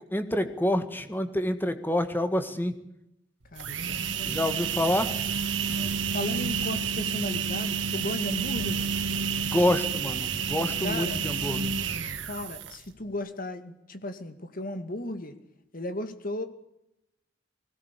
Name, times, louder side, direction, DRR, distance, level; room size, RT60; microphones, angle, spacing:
voice 1, 0.1-2.8 4.2-5.1 9.4-11.7, left 1 dB, 10° left, 9 dB, 1.8 m, -27 dB
sound 1, 3.4-12.9, right 6 dB, 80° right, 1.9 m, -30 dB
voice 2, 3.5-4.6 5.7-9.0 10.8-11.2 12.2-15.3 15.7-16.5, left 1 dB, 45° left, 9 dB, 2.2 m, -36 dB
20.5 x 17.5 x 8.4 m, 0.83 s
head